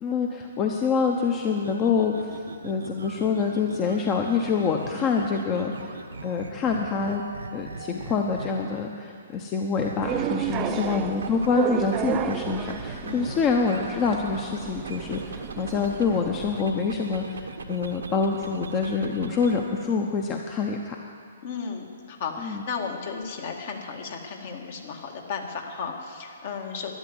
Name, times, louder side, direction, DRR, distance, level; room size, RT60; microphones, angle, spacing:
voice 1, 0.0-7.2 7.5-21.0 22.4-22.6, left 5 dB, 25° left, 2 dB, 1.0 m, -26 dB
sound 1, 1.6-8.8 9.8-11.5 11.8-16.2 16.5-19.6, right 4 dB, 80° right, 1.1 m, -39 dB
sound 2, 10.0-16.6, right 11 dB, 25° right, 0.6 m, -33 dB
voice 2, 10.6-11.1 13.0-13.6 21.4-26.9, left 5 dB, 55° left, 2 dB, 2.1 m, -35 dB
12.5 x 11.0 x 8.1 m, 2.2 s
hypercardioid pair, 130°, 0 cm